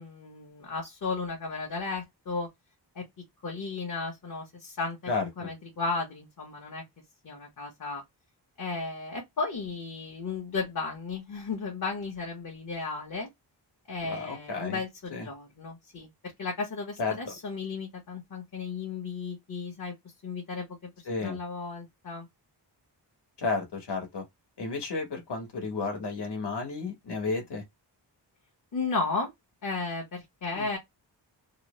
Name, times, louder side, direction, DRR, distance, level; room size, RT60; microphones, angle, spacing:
voice 1, 0.0-2.5 2.9-3.1 3.4-6.8 7.2-8.0 8.6-13.3 13.9-16.1 16.4-20.0 20.2-22.3 28.7-29.3 29.6-30.8, left 4 dB, 50° left, 1.0 m, -34 dB
voice 2, 5.1-5.5 14.0-14.8 15.1-15.3 17.0-17.3 21.1-21.4 23.4-24.2 24.6-27.6 30.5-30.8, left 4 dB, 70° left, 1.3 m, -32 dB
3.0 x 2.0 x 3.0 m
wide cardioid pair, 140°, 43 cm